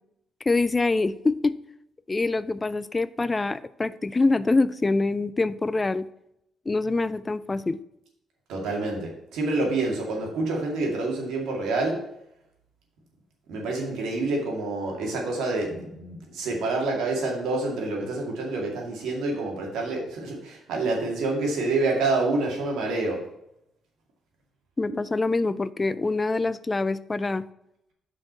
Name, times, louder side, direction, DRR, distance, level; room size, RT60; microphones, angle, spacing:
voice 1, 0.4-1.6 2.1-6.1 6.7-7.8 24.8-27.5, left 3 dB, 25° left, 16 dB, 0.3 m, -25 dB
voice 2, 8.5-12.0 13.5-23.2, right 3 dB, 85° right, 0 dB, 2.2 m, -27 dB
5.7 x 5.0 x 6.2 m, 0.80 s
cardioid pair, 90°, 0 cm